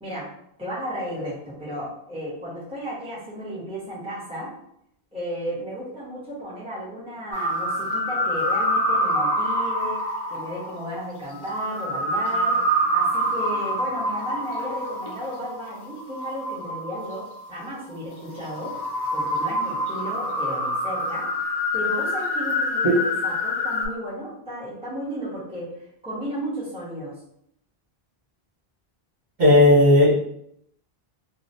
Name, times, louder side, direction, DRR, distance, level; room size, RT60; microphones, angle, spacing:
voice 1, 0.6-4.5 5.1-10.0 10.3-12.6 12.9-18.8 19.1-25.8 26.0-27.2, equal, 5° right, -9 dB, 0.9 m, -34 dB
sound 1, 7.3-17.4 17.9-23.9, equal, 35° left, 0.4 m, -26 dB
voice 2, 29.4-30.2, left 1 dB, 45° right, -9 dB, 1.2 m, -15 dB
2.9 x 2.1 x 2.6 m, 0.72 s
omnidirectional pair, 1.0 m